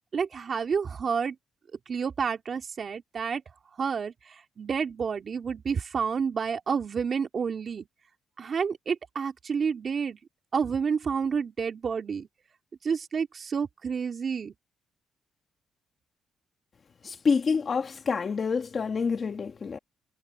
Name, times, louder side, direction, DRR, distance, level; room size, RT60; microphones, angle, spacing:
voice 1, 0.1-1.3 1.9-3.4 3.8-7.9 8.4-10.2 10.5-12.3 12.8-14.5, right 6 dB, 45° right, 2.7 m, -29 dB
voice 2, 17.0-19.8, left 5 dB, 40° left, 1.4 m, -27 dB
cardioid pair, 90°, 0 cm